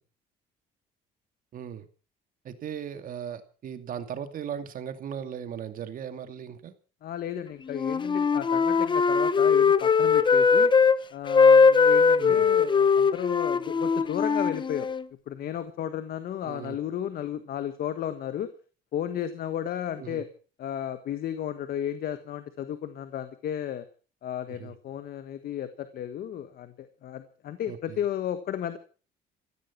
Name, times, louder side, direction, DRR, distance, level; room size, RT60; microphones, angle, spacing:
voice 1, 1.5-1.9 2.4-6.7 12.2-12.5 16.5-16.8 20.0-20.2 24.5-24.7 27.7-28.0, right 8 dB, 55° right, 9 dB, 2.4 m, -37 dB
voice 2, 7.0-10.7 11.1-14.9 15.3-18.5 18.9-20.3 20.6-23.8 24.2-28.8, left 10 dB, 60° left, 11 dB, 1.5 m, -33 dB
Wind instrument woodwind instrument, 7.7-11.0 11.3-15.0, left 5 dB, 30° left, 0.9 m, -20 dB
16.0 x 15.5 x 5.9 m, 0.40 s
cardioid pair, 110°, 17 cm